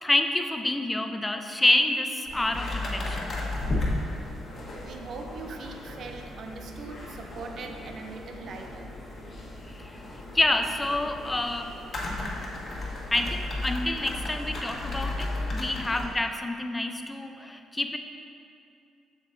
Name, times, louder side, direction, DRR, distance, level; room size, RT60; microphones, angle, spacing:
voice 1, 0.0-3.4 9.7-10.0 10.3-11.8 13.1-18.0, left 2 dB, 15° left, 6 dB, 0.5 m, -28 dB
sound 1, 2.3-16.1, left 2 dB, 45° left, 1.3 m, -35 dB
voice 2, 4.8-8.9, right 4 dB, 60° right, 4 dB, 0.6 m, -41 dB
7.1 x 6.7 x 2.7 m, 2.6 s
hypercardioid pair, 50°, 0 cm